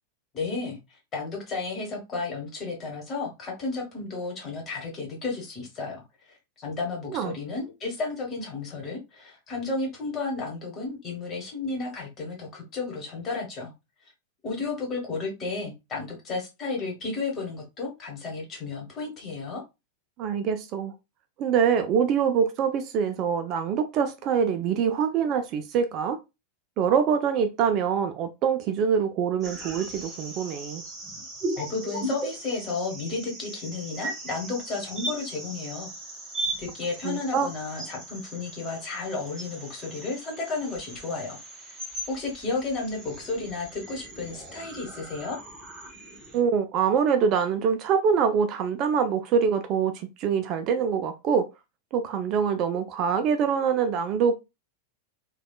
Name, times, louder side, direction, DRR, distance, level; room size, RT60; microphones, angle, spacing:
voice 1, 0.3-6.0 6.6-13.7 14.4-19.6 31.6-35.9 36.6-41.4 42.1-45.4, left 3 dB, 30° left, 1.3 m, -33 dB
voice 2, 20.2-20.9 21.4-26.2 26.8-30.8 37.0-37.5 46.3-51.5 51.9-54.3, right 7 dB, 35° right, 0.4 m, -24 dB
sound 1, 29.4-46.4, right 1 dB, 20° right, 1.2 m, -38 dB
3.3 x 2.3 x 2.3 m
figure-of-eight pair, 90°, 0 cm